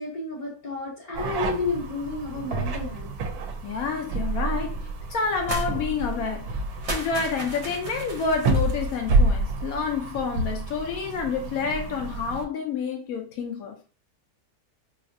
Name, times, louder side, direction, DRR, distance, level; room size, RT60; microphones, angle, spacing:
voice 1, 0.0-3.1, left 3 dB, 40° left, 0.7 m, -31 dB
sound 1, 1.1-12.4, right 3 dB, 85° right, 1.1 m, -29 dB
voice 2, 3.6-6.6 6.9-13.8, left 5 dB, 75° left, 1.0 m, -29 dB
sound 2, 5.5-5.7 6.0-6.1 6.7-9.0, right 2 dB, 50° right, 0.4 m, -35 dB
4.1 x 2.4 x 2.5 m
omnidirectional pair, 1.6 m